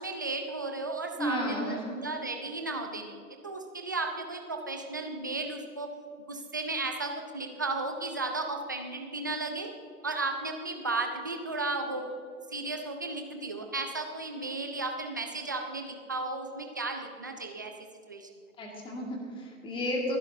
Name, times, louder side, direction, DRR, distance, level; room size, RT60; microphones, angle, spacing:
voice 1, 0.0-3.2 3.4-5.9 6.3-9.7 10.0-12.1 12.5-17.7 18.1-18.3, right 3 dB, 15° right, 4 dB, 0.3 m, -34 dB
voice 2, 1.2-2.0 18.6-20.2, left 1 dB, 10° left, 0 dB, 1.9 m, -33 dB
24.5 x 10.5 x 2.6 m, 2.3 s
figure-of-eight pair, 120°, 45 cm